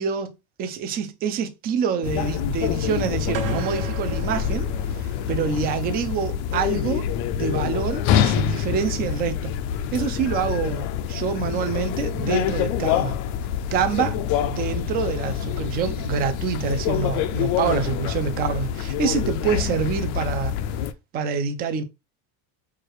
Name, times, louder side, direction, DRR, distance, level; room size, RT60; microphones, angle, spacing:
voice 1, 0.0-4.7 4.9-7.1 7.4-9.5 9.9-13.2 13.7-20.5 21.1-21.8, right 6 dB, 25° right, 0.3 m, -26 dB
sound 1, 2.0-20.9, left 9 dB, 60° left, 0.6 m, -26 dB
sound 2, 3.3-5.5, right 6 dB, 55° right, 1.1 m, -35 dB
4.7 x 2.3 x 4.6 m
cardioid pair, 170°, 46 cm